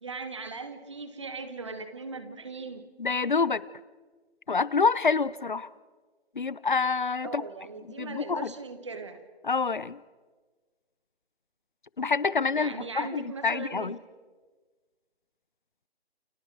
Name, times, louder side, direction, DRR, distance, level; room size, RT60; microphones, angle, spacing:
voice 1, 0.0-2.9 7.2-9.2 12.5-14.0, right 4 dB, 25° right, 9 dB, 1.4 m, -39 dB
voice 2, 3.0-3.6 4.5-5.7 6.3-7.4 8.0-8.5 9.4-10.0 12.0-14.0, left 4 dB, 45° left, 20 dB, 0.7 m, -27 dB
29.0 x 28.5 x 4.8 m, 1.4 s
figure-of-eight pair, 175°, 33 cm